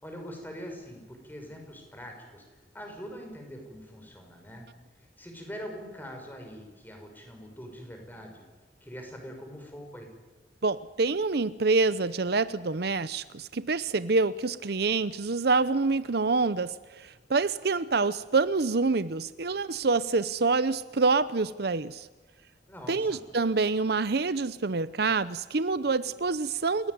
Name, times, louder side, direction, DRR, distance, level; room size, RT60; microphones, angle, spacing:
voice 1, 0.0-4.7 4.9-8.4 8.8-10.1 22.7-23.3, equal, 10° left, 3 dB, 6.1 m, -43 dB
voice 2, 10.6-22.1 22.9-26.9, right 3 dB, 65° right, 15 dB, 0.7 m, -26 dB
30.0 x 18.0 x 9.7 m, 1.2 s
head